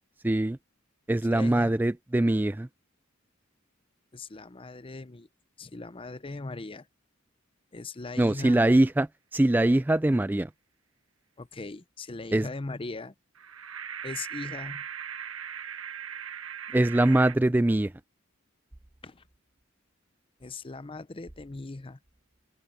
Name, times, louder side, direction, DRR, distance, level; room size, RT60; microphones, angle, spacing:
voice 1, 0.2-0.6 1.1-2.7 8.2-10.5 12.3-12.5 16.7-17.9, right 1 dB, 10° right, 0.3 m, -23 dB
voice 2, 1.3-1.7 4.1-5.3 5.6-6.8 7.7-8.6 11.4-13.1 14.0-14.8 19.0-19.2 20.4-22.0, left 3 dB, 25° left, 0.6 m, -39 dB
sound 1, 13.4-17.4, right 8 dB, 85° right, 1.3 m, -39 dB
head